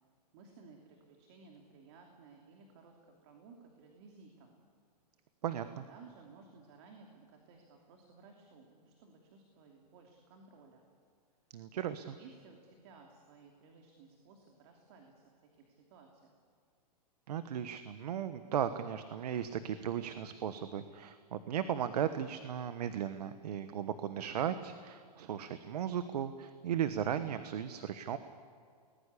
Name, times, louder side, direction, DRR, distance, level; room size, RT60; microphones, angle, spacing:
voice 1, 0.3-4.6 5.9-10.8 11.7-16.3, right 4 dB, 40° right, 2 dB, 2.9 m, -58 dB
voice 2, 5.4-5.8 11.5-12.2 17.3-28.2, right 9 dB, 70° right, 11 dB, 1.3 m, -36 dB
29.5 x 20.5 x 8.4 m, 2.2 s
hypercardioid pair, 165°, 21 cm